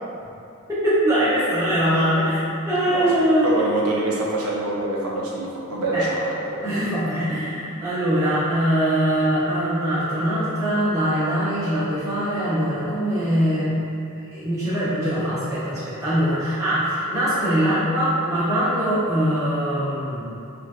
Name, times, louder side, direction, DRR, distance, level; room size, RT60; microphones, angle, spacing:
voice 1, 0.7-2.4 2.6-3.6 5.9-6.0 6.6-13.8 14.3-20.2, equal, 15° right, -13 dB, 1.2 m, -22 dB
voice 2, 2.9-6.6, right 2 dB, 90° right, -5 dB, 0.9 m, -26 dB
6.1 x 2.5 x 2.7 m, 2.6 s
head